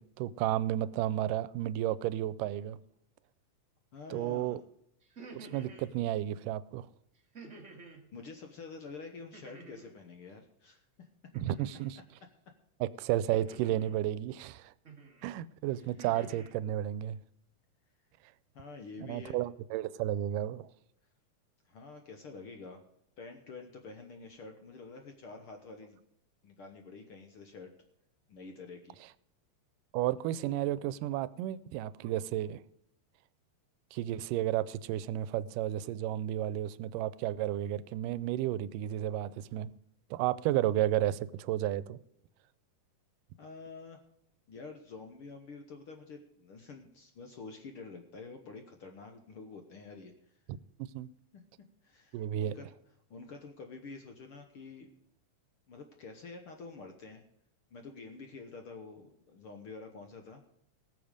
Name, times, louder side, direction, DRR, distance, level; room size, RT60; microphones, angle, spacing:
voice 1, 0.0-2.8 4.1-4.6 5.4-6.9 11.4-12.0 12.8-14.7 15.2-17.2 19.0-20.7 29.9-32.6 33.9-39.7 40.1-42.0 50.9-51.1 52.1-52.5, right 12 dB, 90° right, 2.2 m, -32 dB
voice 2, 3.9-4.6 8.1-11.1 18.5-19.4 21.7-22.8 23.2-26.0 26.4-27.7 28.3-29.0 43.4-44.0 44.5-50.3 51.3-51.4 51.8-52.7 53.1-54.9 55.7-57.2 57.7-60.4, left 4 dB, 60° left, 1.5 m, -48 dB
sound 1, 5.0-5.9 7.3-8.0 9.3-10.0 11.3-11.9 13.3-14.0 14.8-15.2 15.7-16.5, right 3 dB, 25° right, 1.9 m, -50 dB
19.0 x 7.4 x 5.1 m
omnidirectional pair, 3.7 m